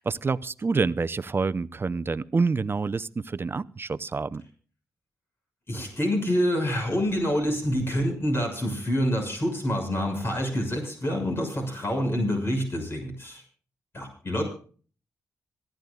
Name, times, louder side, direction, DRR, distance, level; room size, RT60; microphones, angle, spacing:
voice 1, 0.0-4.4, right 4 dB, 35° right, 16 dB, 0.7 m, -27 dB
voice 2, 5.7-13.4 13.9-14.4, equal, 40° left, 3 dB, 6.6 m, -27 dB
26.5 x 12.5 x 2.4 m, 0.41 s
cardioid pair, 60°, 6 cm